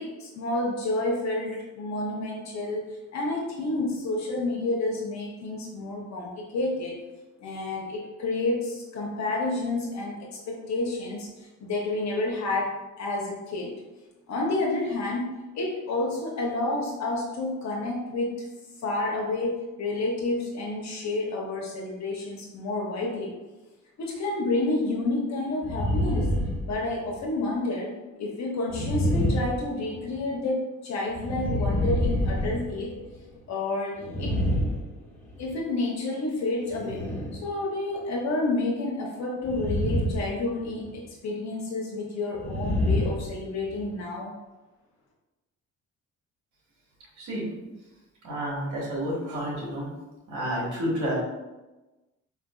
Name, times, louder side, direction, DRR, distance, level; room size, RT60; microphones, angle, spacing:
voice 1, 0.0-7.0 7.4-11.3 11.6-13.8 14.3-18.5 18.8-23.3 24.0-26.3 26.7-32.9 33.5-34.4 35.4-37.1 37.3-44.3, left 2 dB, 65° left, -2 dB, 0.7 m, -30 dB
sound 1, 25.6-27.3 28.7-30.2 31.1-33.2 34.0-35.5 36.7-37.4 39.4-40.3 40.6-40.9 42.3-43.9, equal, 5° left, 1.1 m, -27 dB
voice 2, 48.2-49.9 50.3-51.2, equal, 75° right, -4 dB, 1.3 m, -30 dB
4.2 x 2.5 x 2.3 m, 1.1 s
cardioid pair, 90°, 30 cm